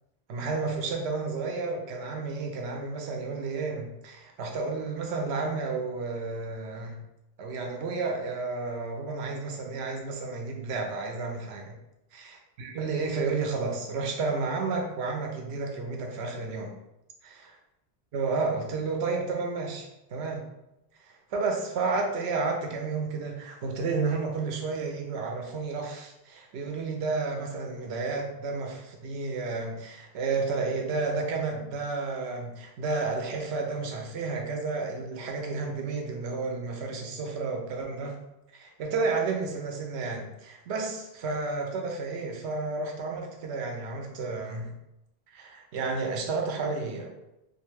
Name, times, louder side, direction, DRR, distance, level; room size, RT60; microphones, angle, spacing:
voice 1, 0.3-7.0 7.4-11.8 12.1-16.8 18.1-20.4 21.0-38.2 38.5-44.7 45.3-47.1, right 4 dB, 85° right, 2 dB, 0.8 m, -31 dB
2.4 x 2.3 x 3.1 m, 0.90 s
omnidirectional pair, 1.1 m